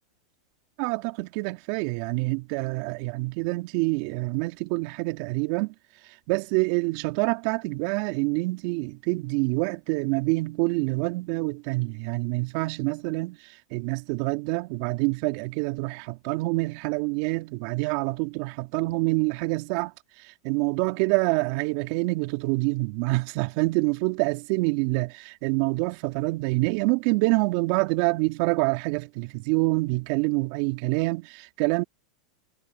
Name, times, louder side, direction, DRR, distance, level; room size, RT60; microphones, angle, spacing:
voice 1, 0.8-5.7 6.3-13.4 13.7-19.9 20.2-31.8, right 25 dB, 55° right, 2.4 m, -26 dB
hypercardioid pair, 105°, 3 cm